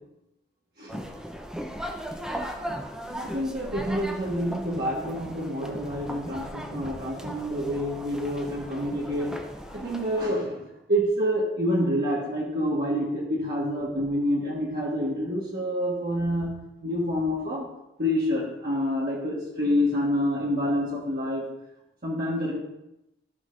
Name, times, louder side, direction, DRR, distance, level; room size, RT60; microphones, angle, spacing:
sound 1, 0.9-10.3, equal, 5° right, 0.7 m, -37 dB
voice 1, 3.1-9.4 9.7-17.7 18.0-21.5 22.0-22.5, equal, 55° right, -5 dB, 1.5 m, -27 dB
15.0 x 6.4 x 2.6 m, 0.89 s
head